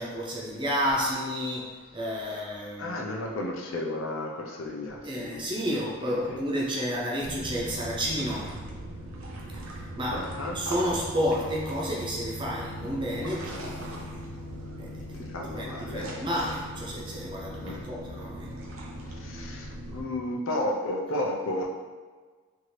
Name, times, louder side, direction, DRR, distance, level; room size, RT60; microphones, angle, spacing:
voice 1, 0.0-3.1 5.0-8.5 10.0-10.2 10.5-14.2 14.8-15.2 15.5-18.5, equal, 20° right, -3 dB, 0.5 m, -31 dB
voice 2, 2.8-5.5 5.7-6.5 10.1-10.6 15.3-16.1 17.6-17.8 19.2-21.7, left 1 dB, 65° left, 1 dB, 0.4 m, -33 dB
sound 1, 7.2-20.0, equal, 80° right, 0.6 m, -39 dB
2.7 x 2.5 x 3.1 m, 1.4 s
head